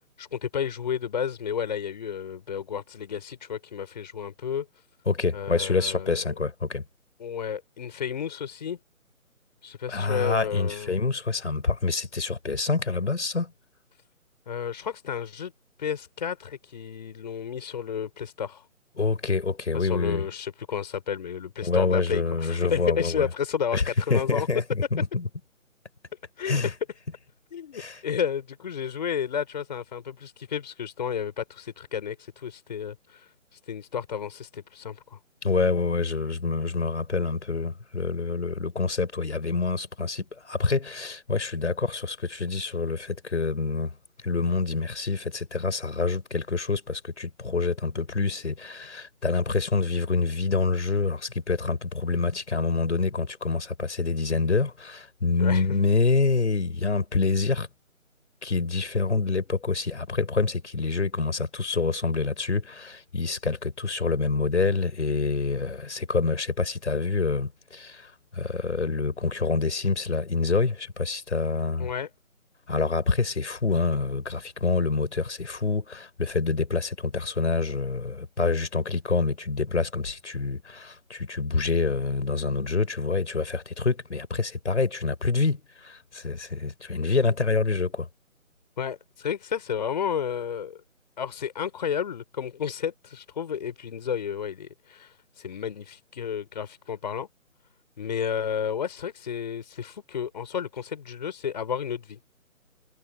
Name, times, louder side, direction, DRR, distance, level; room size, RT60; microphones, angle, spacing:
voice 1, 0.2-4.7 5.3-6.3 7.2-8.8 9.6-11.0 14.5-15.5 15.8-18.7 19.7-24.5 26.4-26.7 27.5-33.3 33.7-35.2 55.4-55.7 71.8-72.1 88.8-90.8 91.2-97.3 98.0-102.2, left 7 dB, 30° left, 5.3 m, -32 dB
voice 2, 5.1-6.8 9.9-13.5 19.0-20.3 21.6-23.3 23.7-23.8 24.1-25.3 26.5-26.7 27.7-28.0 35.4-43.9 44.2-57.7 58.4-71.9 72.7-88.1, left 4 dB, 55° left, 6.8 m, -26 dB
figure-of-eight pair, 155°, 41 cm